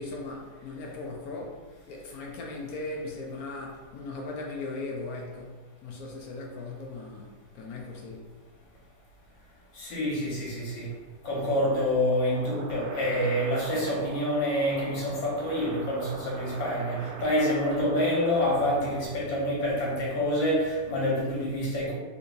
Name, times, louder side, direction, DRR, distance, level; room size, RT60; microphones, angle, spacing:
voice 1, 0.0-8.3, left 3 dB, 70° left, 0.9 m, -38 dB
voice 2, 9.7-10.9 11.2-22.0, equal, 90° left, 1.8 m, -27 dB
sound 1, 12.1-19.1, right 3 dB, 90° right, 1.4 m, -42 dB
3.9 x 2.7 x 2.5 m
omnidirectional pair, 2.0 m